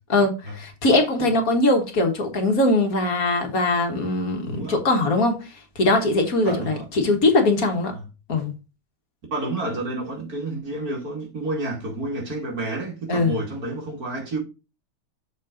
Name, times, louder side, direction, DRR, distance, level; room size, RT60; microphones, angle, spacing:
voice 1, 0.1-5.5 5.8-7.9 8.3-8.5 13.1-13.4, left 2 dB, 60° left, 1.9 m, -21 dB
voice 2, 4.4-4.8 6.4-6.9 7.9-8.1 9.3-14.4, right 2 dB, 65° right, 2.9 m, -30 dB
6.7 x 4.3 x 5.1 m
omnidirectional pair, 1.7 m